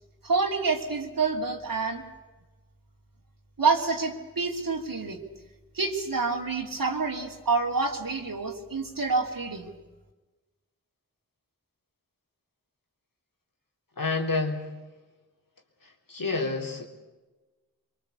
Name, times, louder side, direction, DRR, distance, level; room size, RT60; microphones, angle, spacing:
voice 1, 0.2-2.0 3.6-5.2 5.7-9.7, right 4 dB, 85° right, -1 dB, 3.1 m, -27 dB
voice 2, 14.0-14.7 15.8-16.9, left 3 dB, 80° left, 2 dB, 3.7 m, -29 dB
24.5 x 23.5 x 8.3 m, 1.2 s
wide cardioid pair, 45°, 33 cm